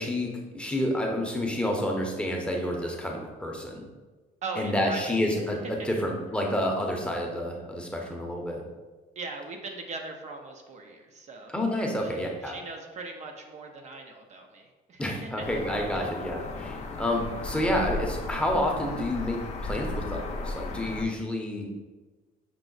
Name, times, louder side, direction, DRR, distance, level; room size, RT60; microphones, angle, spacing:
voice 1, 0.0-3.9 4.6-8.6 11.5-12.6 15.0-21.7, left 1 dB, 5° left, 0 dB, 0.7 m, -29 dB
voice 2, 4.4-5.5 5.9-6.0 9.2-11.5 12.0-15.4 15.9-16.1, right 3 dB, 45° right, 3 dB, 0.5 m, -40 dB
sound 1, 15.4-21.0, left 3 dB, 45° left, 0.5 m, -35 dB
5.9 x 2.0 x 3.8 m, 1.3 s
cardioid pair, 110°, 17 cm